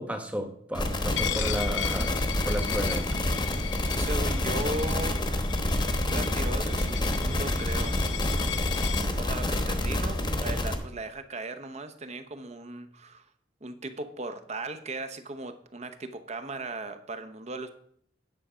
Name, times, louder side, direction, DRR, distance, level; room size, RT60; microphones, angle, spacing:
voice 1, 0.0-3.2, equal, 5° right, 5 dB, 1.2 m, -33 dB
sound 1, 0.7-10.8, left 1 dB, 25° left, 1.1 m, -28 dB
Coin (dropping), 1.2-9.1, left 10 dB, 85° left, 0.6 m, -36 dB
voice 2, 4.0-5.2 6.1-8.0 9.1-13.2 13.6-17.7, right 2 dB, 35° right, 9 dB, 0.9 m, -37 dB
9.9 x 6.8 x 5.0 m, 0.66 s
head